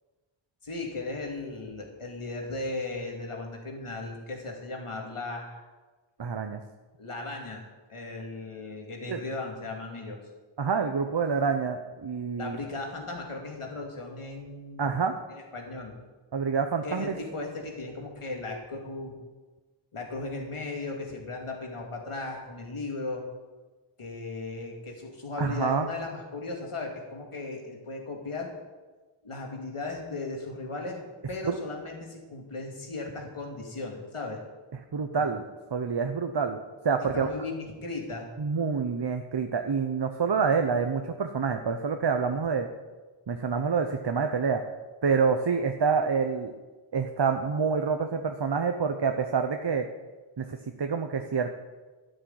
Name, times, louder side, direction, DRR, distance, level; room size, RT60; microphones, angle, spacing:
voice 1, 0.6-5.6 7.0-10.2 12.4-14.9 15.3-15.9 16.8-19.1 19.9-23.2 24.0-28.5 29.2-31.0 31.3-34.4 35.2-35.3 37.1-38.3, left 3 dB, 85° left, 0 dB, 2.6 m, -36 dB
voice 2, 6.2-6.6 9.1-9.2 10.6-12.6 14.8-15.2 16.3-17.1 25.4-25.9 31.5-31.6 34.9-35.4 35.7-36.6 36.8-37.3 38.4-42.7 43.3-44.6 45.0-46.5 46.9-49.9 50.4-51.5, right 5 dB, 55° right, 6 dB, 0.9 m, -27 dB
13.0 x 6.6 x 9.6 m, 1.3 s
wide cardioid pair, 55°, 50 cm